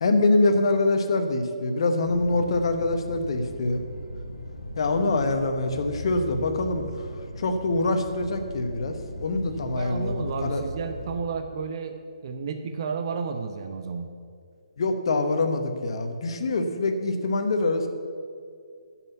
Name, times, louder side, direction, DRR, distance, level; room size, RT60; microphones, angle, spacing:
voice 1, 0.0-3.8 4.8-7.1 7.4-10.6 14.8-17.9, left 2 dB, 55° left, 6 dB, 1.1 m, -25 dB
sound 1, 2.1-11.2, left 1 dB, 90° left, 1.2 m, -38 dB
voice 2, 9.6-12.0 12.2-14.1, right 5 dB, 45° right, 6 dB, 0.8 m, -32 dB
8.7 x 5.9 x 8.2 m, 2.2 s
figure-of-eight pair, 140°, 3 cm